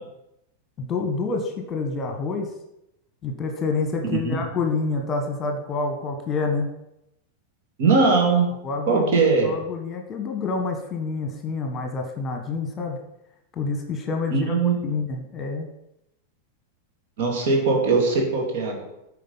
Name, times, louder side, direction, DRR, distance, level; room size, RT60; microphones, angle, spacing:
voice 1, 0.8-2.5 3.2-6.7 8.6-13.0 13.5-14.5 14.8-15.7, left 4 dB, 25° left, 4 dB, 1.4 m, -28 dB
voice 2, 7.8-8.5 8.9-9.5 14.3-14.7 17.2-18.8, right 4 dB, 50° right, 0 dB, 2.5 m, -20 dB
9.2 x 4.9 x 5.7 m, 0.87 s
figure-of-eight pair, 90°, 0 cm